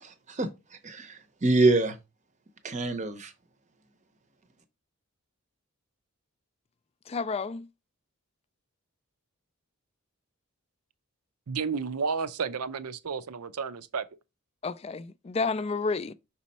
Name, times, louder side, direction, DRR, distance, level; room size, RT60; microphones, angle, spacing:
voice 1, 0.0-0.5 0.8-2.0 2.6-3.3, right 2 dB, 30° right, 0.7 m, -25 dB
voice 2, 7.1-7.7 14.6-16.1, left 4 dB, 25° left, 0.3 m, -30 dB
voice 3, 11.5-14.0, right 5 dB, 80° right, 0.6 m, -32 dB
6.1 x 4.2 x 4.1 m
head